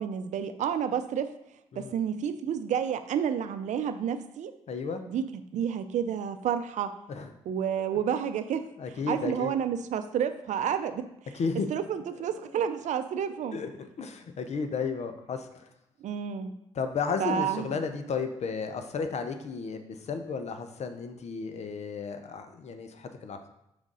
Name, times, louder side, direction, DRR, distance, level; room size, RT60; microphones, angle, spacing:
voice 1, 0.0-1.3 1.8-4.5 5.1-6.9 7.5-8.7 9.1-11.1 11.7-13.6 16.0-16.5 17.2-17.7, right 8 dB, 70° right, 10 dB, 0.5 m, -30 dB
voice 2, 4.7-5.0 7.1-7.3 8.8-9.5 11.3-11.7 13.5-13.7 14.0-15.7 16.7-23.5, left 5 dB, 60° left, 7 dB, 0.7 m, -33 dB
5.1 x 3.6 x 5.4 m, 0.85 s
supercardioid pair, 55°, 13 cm